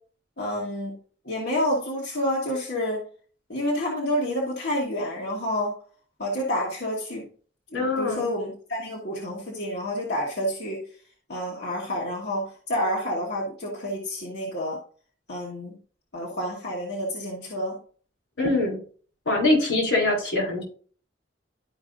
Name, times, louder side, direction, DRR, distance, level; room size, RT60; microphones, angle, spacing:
voice 1, 0.4-1.0 1.2-3.0 3.5-5.7 6.2-7.2 7.7-10.8 11.3-14.8 15.3-15.8 16.1-17.8, equal, 60° left, -4 dB, 1.5 m, -29 dB
voice 2, 7.7-8.3 18.4-18.8 19.3-20.6, left 2 dB, 85° left, -1 dB, 3.8 m, -23 dB
12.0 x 4.9 x 2.6 m, 0.44 s
head